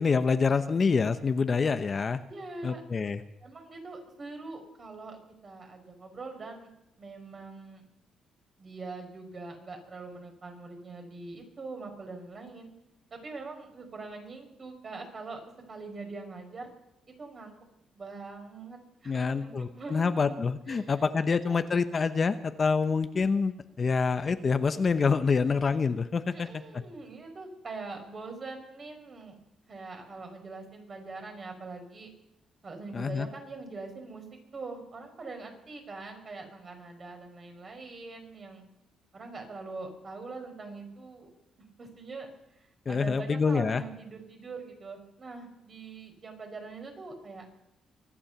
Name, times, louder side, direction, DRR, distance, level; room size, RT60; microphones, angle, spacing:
voice 1, 0.0-2.2 2.6-3.2 19.1-26.5 26.7-26.8 32.9-33.3 42.9-43.8, left 5 dB, 40° left, 10 dB, 0.8 m, -26 dB
voice 2, 2.3-2.8 3.4-6.7 7.0-7.9 8.6-12.7 13.1-15.4 15.7-16.7 17.2-17.5 17.9-20.3 20.7-21.0 21.3-21.6 26.3-29.4 29.7-32.1 32.6-34.2 34.5-38.6 39.1-41.3 41.8-42.3 42.5-47.4, right 3 dB, 40° right, 3 dB, 5.0 m, -43 dB
24.0 x 8.8 x 6.8 m, 0.85 s
cardioid pair, 90°, 0 cm